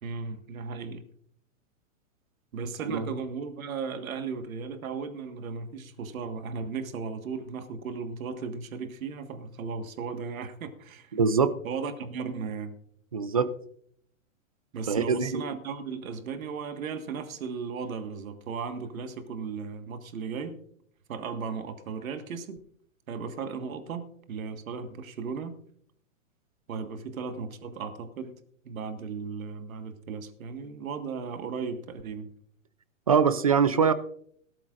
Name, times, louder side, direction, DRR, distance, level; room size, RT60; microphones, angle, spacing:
voice 1, 0.0-1.0 2.5-11.2 11.6-12.8 14.7-20.6 21.1-22.6 23.1-25.6 26.7-28.4 28.7-32.3, right 5 dB, 80° right, 8 dB, 1.7 m, -36 dB
voice 2, 11.1-11.5 13.1-13.5 14.9-15.4 33.1-33.9, right 6 dB, 30° right, 14 dB, 0.4 m, -23 dB
18.5 x 13.0 x 2.5 m, 0.65 s
hypercardioid pair, 165°, 41 cm